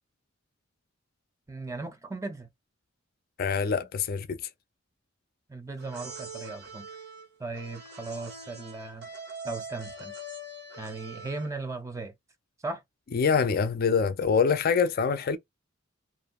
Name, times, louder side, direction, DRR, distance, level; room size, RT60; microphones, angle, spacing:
voice 1, 1.5-2.5 5.5-6.9 7.4-9.1 9.4-10.1 10.8-12.1 12.6-12.8, right 3 dB, 15° right, 0.6 m, -37 dB
voice 2, 3.4-4.4 13.1-15.4, left 6 dB, 50° left, 0.4 m, -25 dB
sound 1, 5.8-11.7, right 2 dB, 55° right, 1.1 m, -43 dB
2.7 x 2.5 x 2.2 m
head